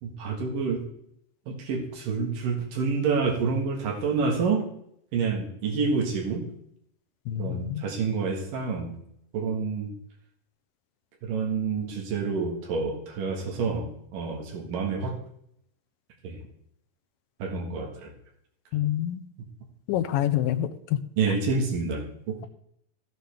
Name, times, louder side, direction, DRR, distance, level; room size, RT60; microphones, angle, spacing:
voice 1, 0.0-0.8 1.5-4.6 5.1-6.5 7.4-8.9 9.3-9.9 11.2-15.2 16.2-16.4 17.4-18.1 21.2-22.5, right 4 dB, 70° right, 1 dB, 3.3 m, -28 dB
voice 2, 7.3-7.8 18.7-19.2 19.9-21.0 21.3-21.4, left 12 dB, 85° left, 10 dB, 2.5 m, -27 dB
14.0 x 9.6 x 3.5 m, 0.72 s
omnidirectional pair, 4.0 m